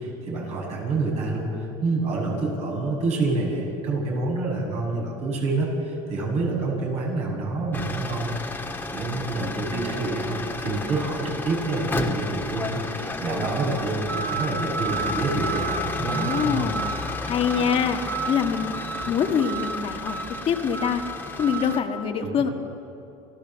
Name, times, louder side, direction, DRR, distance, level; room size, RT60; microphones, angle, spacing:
voice 1, 0.0-8.4 8.9-16.7 19.0-19.1 22.2-22.5, right 3 dB, 55° right, -1 dB, 7.6 m, -27 dB
sound 1, 7.7-21.8, left 1 dB, 15° left, 1.9 m, -31 dB
voice 2, 16.1-16.8 17.2-18.7 19.1-21.0 21.4-22.5, left 7 dB, 45° left, 4 dB, 1.7 m, -25 dB
27.5 x 15.0 x 7.5 m, 2.7 s
supercardioid pair, 105°, 13 cm